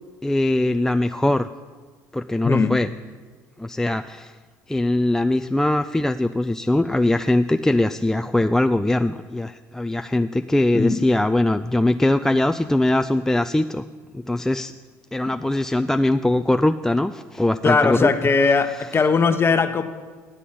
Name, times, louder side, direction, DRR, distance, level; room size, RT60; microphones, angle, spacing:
voice 1, 0.2-1.5 2.1-2.9 3.6-4.4 4.7-13.8 14.1-14.7 15.1-18.1, left 1 dB, 5° left, 7 dB, 0.3 m, -21 dB
voice 2, 17.6-19.8, left 4 dB, 30° left, 9 dB, 1.0 m, -19 dB
10.0 x 8.3 x 5.7 m, 1.5 s
hypercardioid pair, 65°, 8 cm